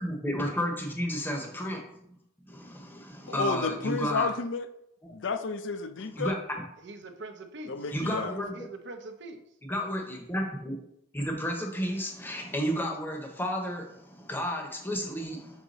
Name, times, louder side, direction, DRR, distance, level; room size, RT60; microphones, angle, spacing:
voice 1, 0.0-1.8 2.1-2.2 2.4-4.3 5.0-5.1 6.1-6.4 7.9-8.5 9.6-10.8 11.1-15.6, equal, 10° left, 2 dB, 0.8 m, -32 dB
voice 2, 3.3-4.7 5.1-6.4 7.7-8.4, left 4 dB, 65° left, 9 dB, 0.6 m, -31 dB
voice 3, 6.8-7.9 8.5-9.4, right 2 dB, 60° right, 6 dB, 0.7 m, -43 dB
6.5 x 3.6 x 4.1 m, 0.76 s
head